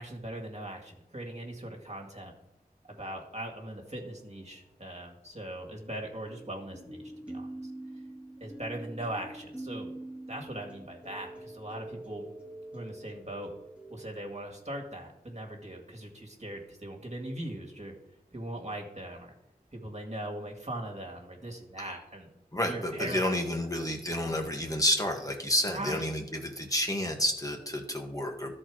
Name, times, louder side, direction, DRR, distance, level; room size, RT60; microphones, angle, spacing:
voice 1, 0.0-2.3 2.9-7.7 8.4-9.9 10.3-12.3 12.7-13.5 13.9-17.9 18.3-19.3 19.7-22.3 22.7-23.5 25.7-26.0, right 1 dB, 45° right, 0 dB, 1.9 m, -40 dB
sound 1, 2.9-3.7 6.3-14.1, right 1 dB, 5° right, 1.4 m, -45 dB
voice 2, 22.5-28.5, left 1 dB, 20° left, 2 dB, 1.4 m, -30 dB
13.0 x 4.4 x 4.7 m, 0.92 s
wide cardioid pair, 40°, 16 cm